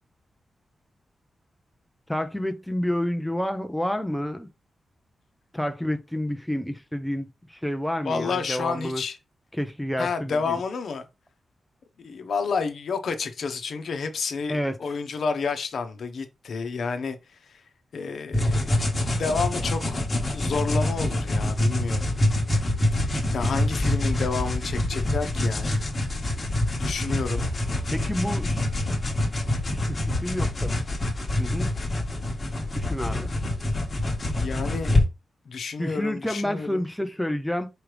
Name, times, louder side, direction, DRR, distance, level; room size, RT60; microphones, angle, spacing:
voice 1, 2.1-4.5 5.5-9.0 9.5-10.6 14.5-14.8 27.9-28.6 29.7-30.8 31.4-31.7 32.7-33.3 35.8-37.7, left 1 dB, 5° left, 0.5 m, -29 dB
voice 2, 8.0-9.2 10.0-11.1 12.0-17.2 17.5-17.6 17.9-20.0 20.3-22.1 22.9-23.0 23.3-25.8 26.8-27.4 34.2-34.9 35.5-36.8, left 5 dB, 70° left, 0.8 m, -30 dB
sound 1, 18.3-35.0, left 1 dB, 30° left, 1.4 m, -26 dB
5.0 x 3.2 x 3.2 m
wide cardioid pair, 135°, 0 cm